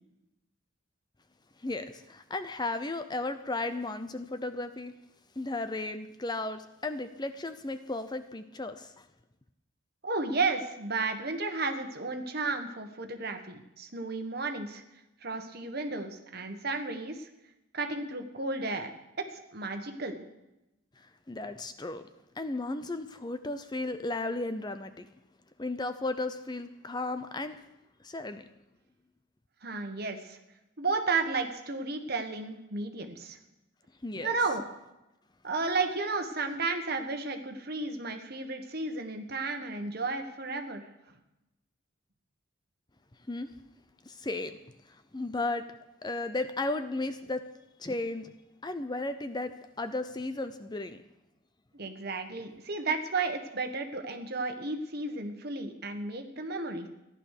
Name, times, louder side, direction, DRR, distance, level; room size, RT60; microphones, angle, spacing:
voice 1, 1.6-4.9 5.4-9.1 21.0-22.0 22.4-25.1 25.6-27.6 28.0-28.4 34.0-34.4 43.3-43.5 44.0-44.6 44.9-45.6 46.0-47.4 47.8-48.3 48.6-51.0, left 2 dB, 20° left, 10 dB, 0.6 m, -35 dB
voice 2, 10.0-14.8 15.2-17.3 17.7-19.2 19.5-20.2 29.6-30.4 30.8-33.4 34.2-34.6 35.4-40.8 51.7-56.9, right 3 dB, 50° right, 6 dB, 1.5 m, -33 dB
15.0 x 11.0 x 6.6 m, 0.93 s
head